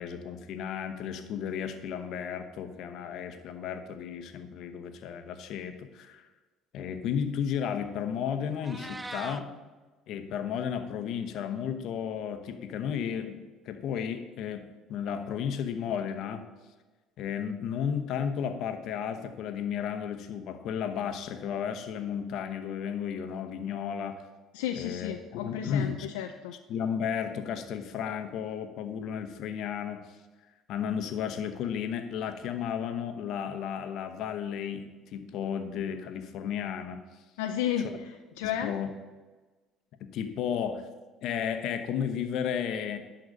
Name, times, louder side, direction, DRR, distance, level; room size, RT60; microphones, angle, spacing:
voice 1, 0.0-6.3 6.7-9.6 10.1-13.4 13.6-14.6 14.9-16.4 17.2-24.2 24.7-26.1 26.7-30.2 30.7-37.0 37.8-37.9 38.4-38.9 40.0-40.9 41.2-43.0, left 8 dB, 65° left, 8 dB, 0.9 m, -33 dB
Meow, 8.4-9.4, right 2 dB, 15° right, 0.6 m, -40 dB
voice 2, 24.5-26.5 37.4-38.7, left 10 dB, 90° left, 6 dB, 0.4 m, -33 dB
11.0 x 3.9 x 6.5 m, 1.3 s
supercardioid pair, 80°, 0 cm